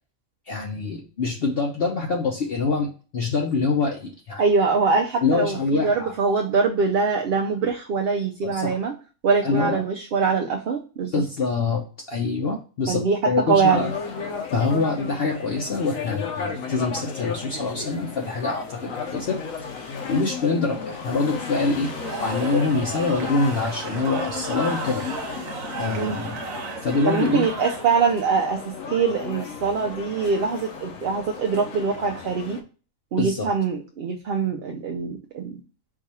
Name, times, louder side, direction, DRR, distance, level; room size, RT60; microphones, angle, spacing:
voice 1, 0.5-4.4 5.2-6.1 8.4-8.8 9.4-9.8 11.1-13.9 14.5-19.4 20.1-21.9 22.2-25.0 25.8-26.4 26.8-27.5 33.2-33.5, left 4 dB, 55° left, 0 dB, 0.8 m, -25 dB
voice 2, 4.4-8.9 9.2-11.1 12.9-13.2 13.5-13.8 26.0-26.4 27.1-28.6 28.9-32.6 33.1-35.6, right 5 dB, 60° right, 1 dB, 0.6 m, -23 dB
sound 1, 13.6-32.6, left 5 dB, 75° left, 1.1 m, -34 dB
Cheering / Crowd, 21.8-28.2, right 4 dB, 80° right, 1.2 m, -34 dB
4.7 x 2.4 x 4.1 m, 0.36 s
omnidirectional pair, 1.4 m